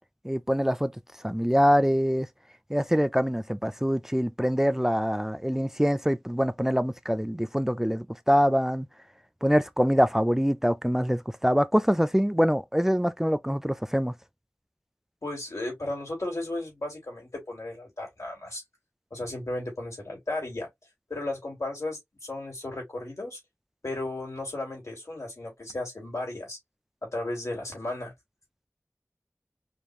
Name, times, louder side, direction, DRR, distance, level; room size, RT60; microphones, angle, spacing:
voice 1, 0.2-0.9 1.2-2.3 2.7-8.9 9.4-14.1, equal, 10° right, 0.4 m, -24 dB
voice 2, 15.2-18.6 19.1-20.7 21.1-23.4 23.8-26.6 27.0-28.1, left 2 dB, 85° left, 3.2 m, -34 dB
5.1 x 2.9 x 2.4 m
wide cardioid pair, 45°, 5 cm